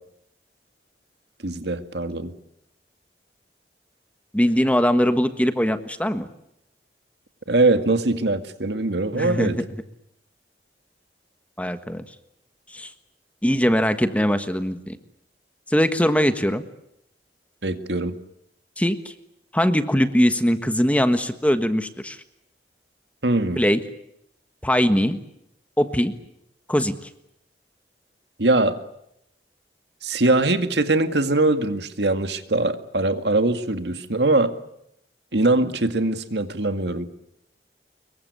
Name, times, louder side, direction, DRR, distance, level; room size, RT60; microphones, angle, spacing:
voice 1, 1.4-2.3 7.5-9.6 17.6-18.2 23.2-23.6 28.4-28.8 30.0-34.5 35.3-37.1, right 2 dB, 75° right, 9 dB, 2.0 m, -22 dB
voice 2, 4.3-6.3 9.1-9.6 11.6-12.0 12.7-12.9 13.4-15.0 15.7-16.6 18.8-19.1 19.5-22.2 23.6-23.8 24.6-25.2 25.8-26.1 26.7-26.9, equal, 10° left, 9 dB, 1.4 m, -21 dB
25.5 x 22.5 x 8.4 m, 0.78 s
head